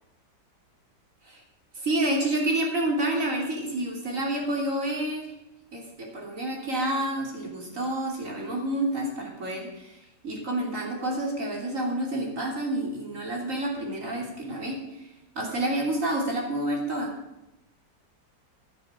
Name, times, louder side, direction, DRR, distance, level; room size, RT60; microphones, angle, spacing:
voice 1, 1.8-5.3 5.7-15.1 15.4-17.1, right 1 dB, 45° right, -1 dB, 3.5 m, -29 dB
10.5 x 10.5 x 7.4 m, 0.90 s
omnidirectional pair, 2.0 m